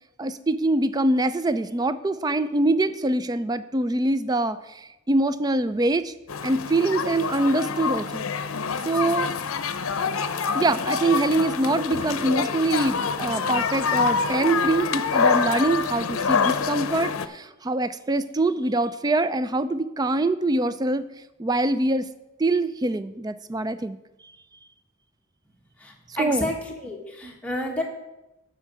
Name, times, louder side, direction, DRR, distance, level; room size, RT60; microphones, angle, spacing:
voice 1, 0.2-6.1 6.4-8.2 8.8-9.3 10.5-21.0 21.4-22.1 22.4-24.0 26.2-26.5, right 2 dB, 20° right, 13 dB, 0.4 m, -24 dB
sound 1, 6.3-17.3, left 5 dB, 90° left, 0.6 m, -26 dB
voice 2, 25.8-27.8, left 1 dB, 5° left, -1 dB, 1.4 m, -30 dB
8.3 x 5.7 x 7.5 m, 0.97 s
head